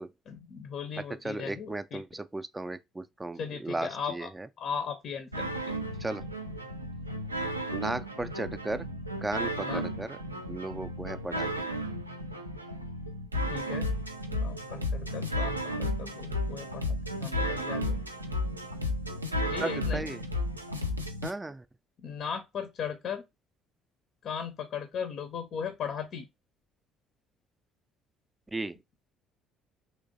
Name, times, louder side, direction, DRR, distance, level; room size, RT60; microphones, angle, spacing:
voice 1, 0.3-2.0 3.3-4.3 4.6-5.5 9.6-9.9 13.5-13.9 14.3-18.0 19.5-20.1 22.0-23.2 24.2-26.2, left 7 dB, 50° left, 0.5 m, -37 dB
voice 2, 1.2-4.3 6.0-6.2 7.7-8.9 9.2-10.2 10.5-11.7 19.6-20.2 21.2-21.6 28.5-28.8, right 2 dB, 15° right, 0.4 m, -35 dB
sound 1, 5.3-21.3, left 1 dB, 90° right, 0.4 m, -33 dB
3.2 x 3.0 x 2.5 m
figure-of-eight pair, 50°, 0 cm